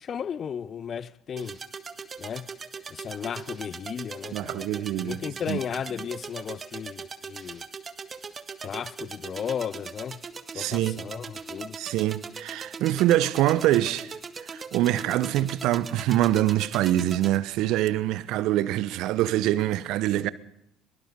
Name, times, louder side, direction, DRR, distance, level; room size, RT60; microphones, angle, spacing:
voice 1, 0.0-1.6 2.2-2.5 2.9-4.8 5.0-7.6 8.6-10.2 10.5-11.8, left 8 dB, 45° left, 0.8 m, -35 dB
sound 1, 1.4-17.4, right 5 dB, 35° right, 1.7 m, -40 dB
voice 2, 4.3-5.6 10.5-11.0 11.8-20.3, right 14 dB, 60° right, 1.0 m, -25 dB
22.5 x 22.5 x 5.3 m
figure-of-eight pair, 55°, 0 cm